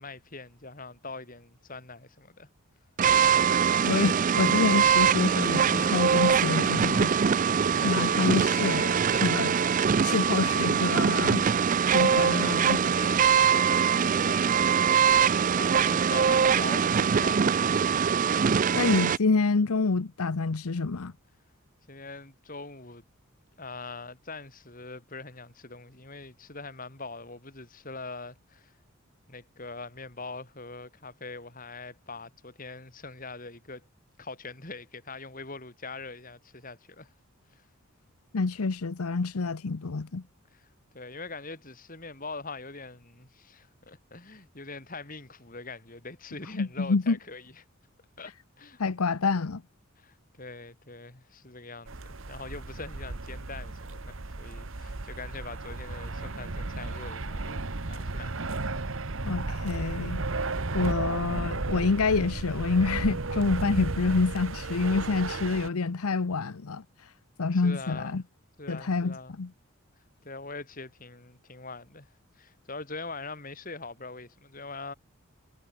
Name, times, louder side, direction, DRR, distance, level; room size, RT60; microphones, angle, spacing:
voice 1, 0.0-2.5 7.7-8.3 11.8-17.5 21.9-23.0 23.6-28.8 29.3-33.8 34.2-37.1 37.5-37.6 40.5-40.7 40.9-47.6 48.2-48.8 50.0-57.6 57.9-58.3 60.3-60.7 67.5-68.2 68.6-69.4 70.2-72.1 72.4-74.9, left 3 dB, 40° left, 4.4 m, -42 dB
sound 1, 3.0-19.2, right 7 dB, 35° right, 0.4 m, -23 dB
voice 2, 3.8-7.1 7.8-9.5 10.0-11.4 11.9-12.8 18.7-21.1 38.3-40.2 46.5-47.2 48.8-49.6 59.2-60.2 60.7-66.8 67.4-68.2 68.7-69.5, left 4 dB, 90° left, 0.8 m, -27 dB
sound 2, 51.9-65.7, right 3 dB, 65° right, 1.3 m, -34 dB
head